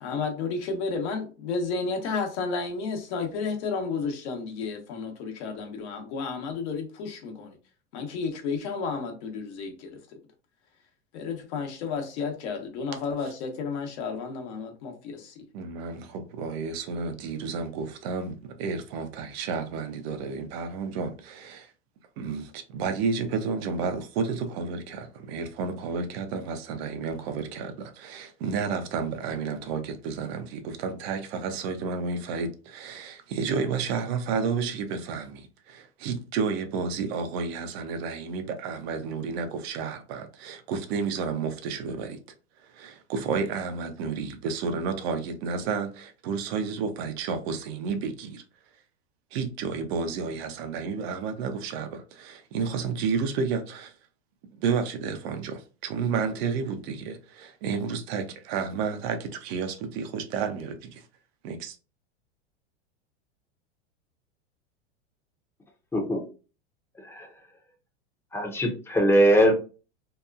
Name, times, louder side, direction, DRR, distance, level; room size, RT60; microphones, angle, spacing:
voice 1, 0.0-7.6 7.9-10.0 11.1-15.3, left 4 dB, 65° left, 0.9 m, -32 dB
voice 2, 15.5-21.7 22.2-42.2 42.7-48.4 49.3-53.9 54.5-61.0 61.4-61.8, right 5 dB, 60° right, 0.6 m, -31 dB
voice 3, 68.3-69.5, equal, 5° left, 0.6 m, -21 dB
2.8 x 2.2 x 2.3 m
hypercardioid pair, 115°, 35 cm